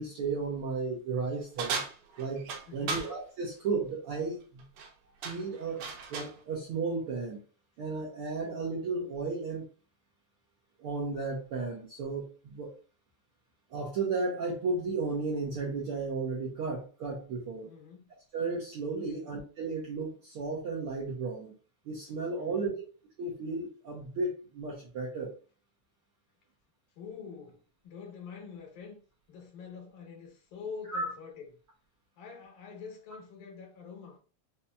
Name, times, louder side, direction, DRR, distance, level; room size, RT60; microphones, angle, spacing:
voice 1, 0.0-1.8 2.2-4.6 5.2-5.8 6.1-7.4 7.8-9.6 10.8-12.7 13.7-17.7 18.3-21.5 21.8-22.7 23.2-25.3 30.9-31.1, right 4 dB, 75° right, 1.3 m, -34 dB
sound 1, 1.6-3.1 4.6-4.9 5.2-6.4, right 4 dB, 90° right, 2.3 m, -36 dB
voice 2, 2.7-3.1 17.7-18.1 19.1-19.3 22.4-22.8 27.0-29.0 29.3-31.5 32.2-34.2, left 5 dB, 80° left, 2.5 m, -46 dB
5.5 x 2.7 x 2.3 m
omnidirectional pair, 3.4 m